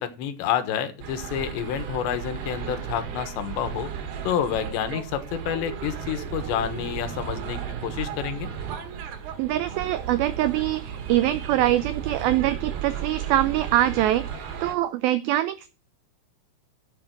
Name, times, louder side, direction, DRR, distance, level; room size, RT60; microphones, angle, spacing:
voice 1, 0.0-3.9 4.3-8.5, left 9 dB, 85° left, 10 dB, 3.5 m, -29 dB
sound 1, 1.0-14.7, right 8 dB, 70° right, 3.6 m, -34 dB
voice 2, 9.4-15.7, right 13 dB, 85° right, 13 dB, 2.1 m, -24 dB
11.5 x 7.7 x 4.6 m, 0.33 s
omnidirectional pair, 4.9 m